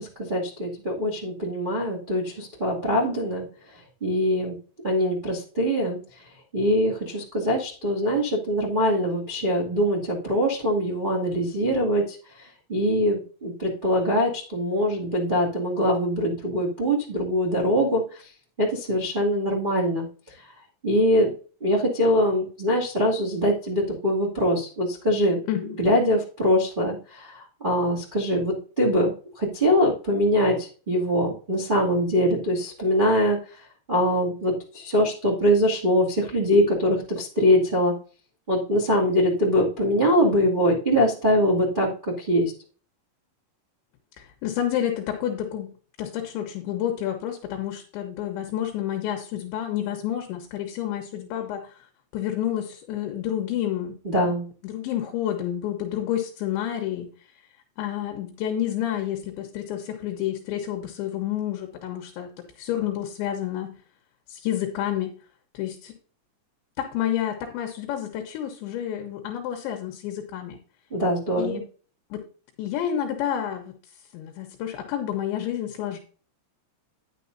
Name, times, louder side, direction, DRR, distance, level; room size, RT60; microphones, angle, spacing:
voice 1, 0.0-3.4 4.0-4.5 4.8-6.0 6.5-12.2 12.7-18.0 18.6-20.0 20.8-21.3 21.6-25.4 25.8-33.4 33.9-37.9 38.5-41.9 42.2-42.5 54.0-54.4 70.9-71.6, equal, 50° right, -2 dB, 0.6 m, -23 dB
voice 2, 25.5-25.8 44.2-45.7 46.0-51.9 52.1-54.0 54.2-54.3 54.6-57.1 57.8-63.7 64.3-65.1 65.5-65.9 66.8-70.6 71.4-71.6 72.1-72.2 72.6-73.7 74.1-76.0, left 11 dB, 70° left, 4 dB, 3.3 m, -29 dB
10.5 x 9.5 x 2.7 m, 0.40 s
omnidirectional pair, 5.8 m